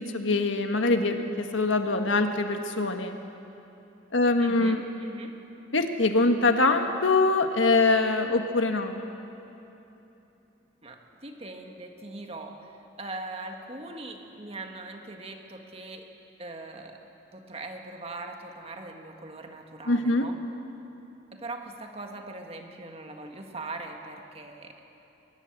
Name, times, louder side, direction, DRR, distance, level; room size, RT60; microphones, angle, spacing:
voice 1, 0.0-3.2 4.1-4.8 5.7-9.0 19.9-20.3, left 3 dB, 90° left, 6 dB, 1.5 m, -24 dB
voice 2, 4.4-5.3 10.8-16.1 16.4-17.0 17.3-20.4 21.3-24.8, right 2 dB, 30° right, 3 dB, 1.8 m, -41 dB
22.0 x 20.0 x 7.5 m, 3.0 s
head